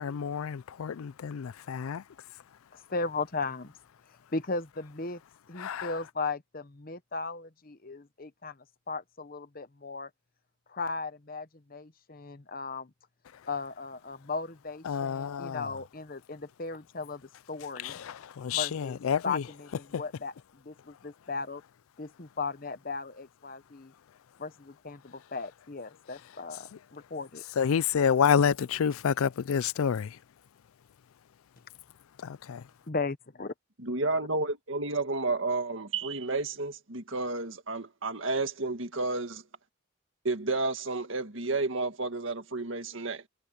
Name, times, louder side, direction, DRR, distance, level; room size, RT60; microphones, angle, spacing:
voice 1, 0.0-2.0 5.6-5.9 14.9-15.7 17.8-19.4 19.9-20.0 27.6-30.2 32.2-32.6, left 7 dB, 80° left, 0.4 m, -28 dB
voice 2, 2.7-3.7 4.3-5.2 5.5-8.6 8.9-10.1 10.7-12.9 13.5-17.2 17.5-18.0 18.5-20.3 20.6-21.6 22.0-23.9 24.4-27.4 32.9-33.5, left 4 dB, 45° left, 1.0 m, -36 dB
voice 3, 33.8-39.4 40.2-43.2, right 3 dB, 65° right, 1.9 m, -31 dB
head